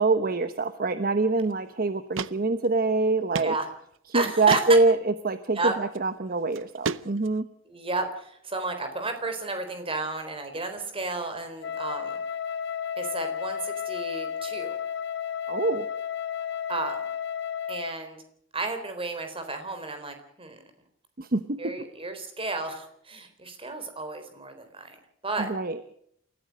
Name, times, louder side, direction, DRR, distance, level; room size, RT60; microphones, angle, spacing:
voice 1, 0.0-3.5 4.1-7.5 15.5-15.9 21.2-21.9 25.4-25.8, right 3 dB, 50° right, 11 dB, 1.0 m, -25 dB
sound 1, 1.5-1.6 2.1-2.3 2.6-2.7 3.3-3.5 3.9-4.0 4.5-4.7 5.8-6.0 6.5-7.4, right 5 dB, 75° right, 0.7 m, -31 dB
voice 2, 4.1-4.6 5.6-5.7 7.7-12.2 13.0-14.8 16.7-17.0 17.7-18.2 18.5-20.6 21.6-25.5, right 3 dB, 30° right, 7 dB, 3.9 m, -32 dB
Wind instrument woodwind instrument, 11.6-18.0, left 8 dB, 60° left, 1.0 m, -32 dB
28.5 x 14.5 x 6.5 m, 0.68 s
head